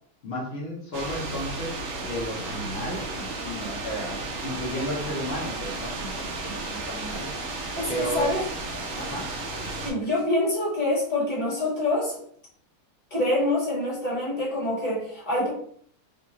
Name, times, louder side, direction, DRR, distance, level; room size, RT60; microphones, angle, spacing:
voice 1, 0.2-7.3 7.9-8.3 9.0-9.4, equal, 80° left, -3 dB, 0.5 m, -33 dB
sound 1, 0.9-9.9, right 2 dB, 80° right, 0.7 m, -33 dB
voice 2, 7.8-8.4 9.8-12.1 13.1-15.5, left 1 dB, 25° left, -6 dB, 1.4 m, -26 dB
4.1 x 2.4 x 2.9 m, 0.62 s
omnidirectional pair, 2.4 m